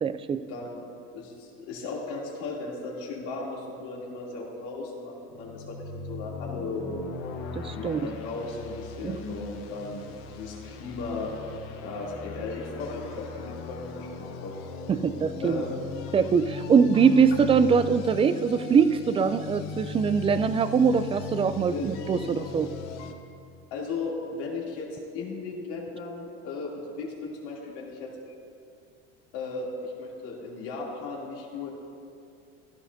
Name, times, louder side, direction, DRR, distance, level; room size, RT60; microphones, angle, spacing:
voice 1, 0.0-0.4 7.6-8.0 9.0-9.2 14.9-15.6 16.1-22.7, right 6 dB, 20° right, 12 dB, 0.4 m, -23 dB
voice 2, 1.1-7.0 7.7-10.0 10.3-11.3 11.8-14.6 15.4-15.8 21.7-21.8 22.2-22.3 23.7-28.1 29.3-31.7, left 3 dB, 80° left, -4 dB, 3.0 m, -36 dB
sound 1, 5.3-23.1, left 5 dB, 60° left, 1.1 m, -39 dB
15.5 x 12.5 x 2.7 m, 2.4 s
supercardioid pair, 115°, 29 cm